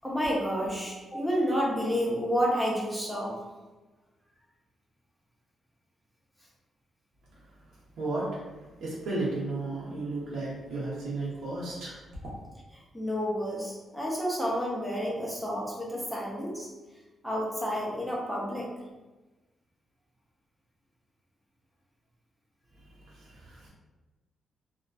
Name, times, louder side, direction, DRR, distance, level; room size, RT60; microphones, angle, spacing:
voice 1, 0.0-3.4 12.9-16.7 17.2-18.7, equal, ahead, -4 dB, 0.5 m, -30 dB
voice 2, 8.0-8.3 8.8-12.0 23.2-23.7, right 2 dB, 85° right, -6 dB, 0.7 m, -33 dB
2.5 x 2.2 x 2.2 m, 1.2 s
wide cardioid pair, 145°, 0 cm